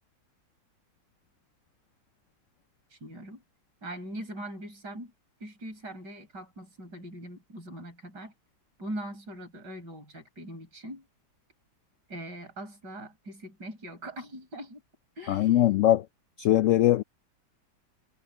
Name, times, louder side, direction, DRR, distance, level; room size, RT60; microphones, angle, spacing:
voice 1, 2.9-3.4 3.8-5.1 5.4-8.3 8.8-11.1 12.1-14.8 15.2-15.6, right 1 dB, 70° right, 5.9 m, -41 dB
voice 2, 15.3-16.0 16.4-17.0, left 13 dB, 85° left, 0.6 m, -21 dB
omnidirectional pair, 1.9 m